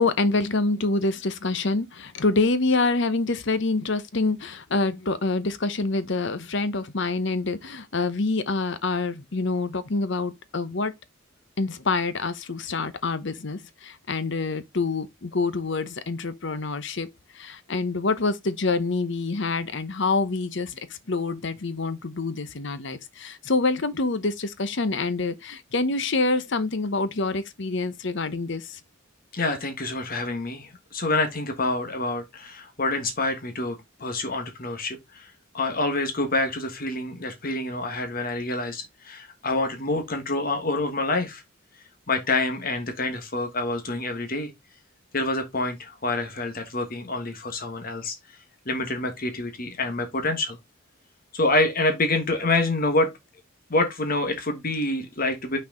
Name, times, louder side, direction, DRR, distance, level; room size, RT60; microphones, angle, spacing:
voice 1, 0.0-10.9 11.6-28.8, left 3 dB, 60° left, 0.9 m, -26 dB
voice 2, 29.3-41.4 42.1-44.5 45.1-48.1 48.6-50.6 51.3-53.1 53.7-55.6, left 2 dB, 45° left, 1.3 m, -27 dB
5.9 x 4.7 x 3.8 m
head